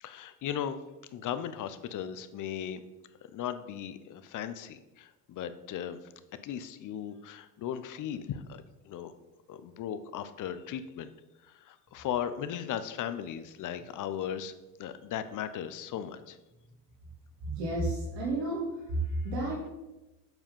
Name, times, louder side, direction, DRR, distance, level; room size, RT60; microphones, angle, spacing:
voice 1, 0.0-0.8 1.1-2.8 3.3-6.0 6.4-9.1 9.5-11.1 11.7-14.5 14.8-16.4, left 9 dB, 40° left, 12 dB, 0.7 m, -37 dB
voice 2, 17.4-18.6 18.9-19.0 19.2-19.7, right 1 dB, 60° right, -4 dB, 2.5 m, -32 dB
7.7 x 4.8 x 5.4 m, 1.0 s
hypercardioid pair, 85°, 48 cm